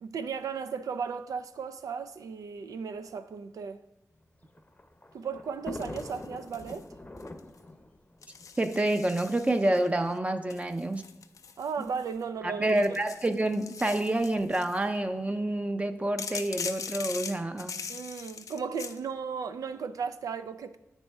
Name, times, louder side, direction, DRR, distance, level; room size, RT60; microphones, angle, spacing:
voice 1, 0.0-3.8 5.1-6.9 11.6-12.8 17.9-20.8, right 6 dB, 85° right, 0.4 m, -35 dB
Thunder, 4.2-9.5 10.4-10.5 10.7-10.8 11.9-12.2, left 2 dB, 25° left, 0.7 m, -44 dB
sound 1, 5.8-6.8 7.2-7.6 8.2-9.9 10.5-12.2 12.7-14.8 16.2-19.0, left 6 dB, 70° left, 0.4 m, -41 dB
voice 2, 8.6-11.1 12.4-17.8, right 1 dB, 20° right, 0.5 m, -28 dB
8.7 x 4.1 x 3.4 m
cardioid pair, 55°, 6 cm